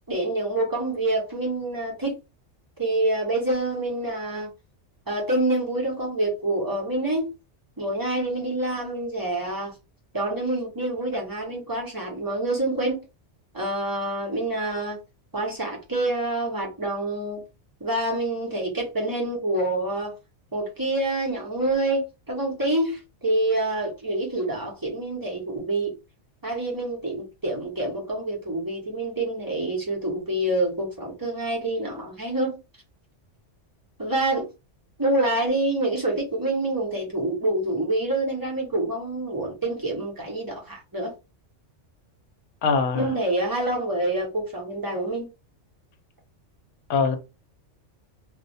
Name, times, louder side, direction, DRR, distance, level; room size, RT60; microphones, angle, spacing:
voice 1, 0.1-2.2 2.8-4.5 5.1-7.3 7.8-9.7 10.1-13.0 13.5-15.0 15.3-17.4 17.8-20.1 20.5-25.9 26.4-32.6 34.0-34.5 35.0-41.1 43.0-45.3, right 1 dB, 20° right, 0.6 m, -27 dB
voice 2, 42.6-43.1 46.9-47.2, left 5 dB, 70° left, 0.8 m, -22 dB
2.2 x 2.1 x 2.6 m
omnidirectional pair, 1.3 m